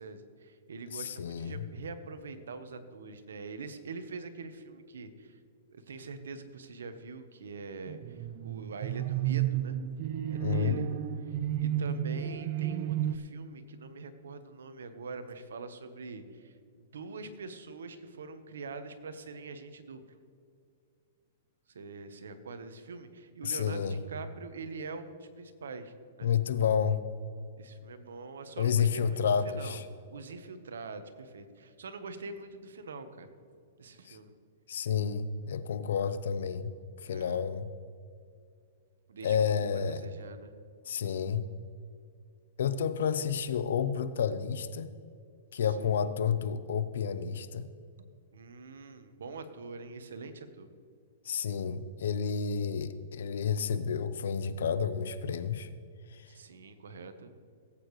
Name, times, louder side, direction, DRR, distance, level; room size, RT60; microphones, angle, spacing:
voice 1, 0.0-5.4 5.7-9.8 10.3-10.9 11.3-20.0 21.7-26.3 27.6-29.8 30.1-33.3 33.8-34.3 37.0-37.4 39.1-39.5 39.9-40.5 45.6-46.1 48.0-50.7 56.3-57.3, right 4 dB, 90° right, 9 dB, 1.1 m, -44 dB
voice 2, 0.9-1.7 10.4-10.7 23.4-24.0 26.2-27.0 28.6-29.8 34.0-34.2 34.7-36.7 37.0-37.7 39.2-40.0 40.9-41.5 42.6-44.9 45.5-47.7 51.2-55.7 56.1-56.3, left 7 dB, 75° left, 13 dB, 0.7 m, -30 dB
sound 1, 7.9-13.2, right 11 dB, 50° right, 0.4 m, -32 dB
18.0 x 8.7 x 3.2 m, 2.3 s
hypercardioid pair, 140°, 0 cm